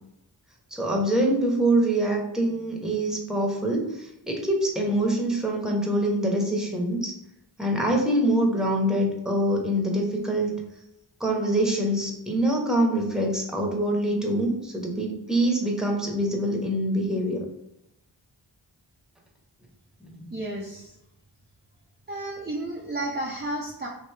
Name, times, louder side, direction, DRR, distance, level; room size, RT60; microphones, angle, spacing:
voice 1, 0.7-7.1 7.6-10.6 11.2-17.5 20.0-20.3, right 1 dB, ahead, -1 dB, 1.0 m, -25 dB
voice 2, 20.3-20.9 22.1-23.9, right 1 dB, 20° right, -3 dB, 0.6 m, -32 dB
3.1 x 2.8 x 3.3 m, 0.84 s
cardioid pair, 45°, 46 cm